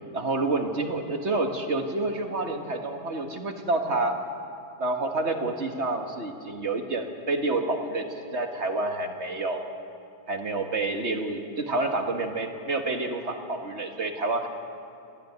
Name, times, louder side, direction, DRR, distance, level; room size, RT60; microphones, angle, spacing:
voice 1, 0.1-4.2 4.8-8.1 8.3-9.7 10.3-14.5, right 2 dB, 40° right, 5 dB, 1.9 m, -28 dB
24.0 x 15.5 x 9.6 m, 2.6 s
omnidirectional pair, 1.9 m